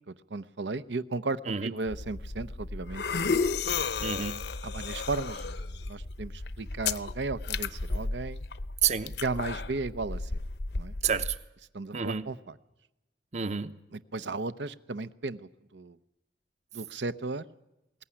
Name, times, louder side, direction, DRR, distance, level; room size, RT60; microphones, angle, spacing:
voice 1, 0.1-3.9 4.6-8.5 9.2-10.4 10.8-10.9 11.7-12.6 13.9-16.0 16.7-17.4, right 3 dB, 80° right, 13 dB, 0.8 m, -35 dB
sound 1, 1.9-11.4, left 4 dB, 70° left, 0.8 m, -33 dB
voice 2, 4.0-4.4 8.8-9.1 11.0-11.4 11.9-12.3 13.3-13.7, right 7 dB, 40° right, 13 dB, 0.8 m, -29 dB
21.0 x 17.5 x 9.9 m, 0.95 s
head